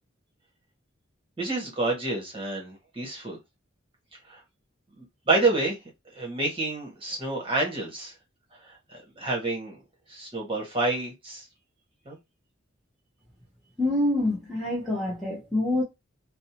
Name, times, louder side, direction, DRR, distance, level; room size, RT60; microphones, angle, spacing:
voice 1, 1.4-3.4 4.3-4.4 5.0-5.8 6.1-8.1 8.7-9.8 10.1-11.4 12.1-12.2, right 2 dB, 25° right, 1.0 m, -28 dB
voice 2, 13.8-15.8, left 1 dB, ahead, 0.6 m, -26 dB
2.6 x 2.0 x 2.8 m
head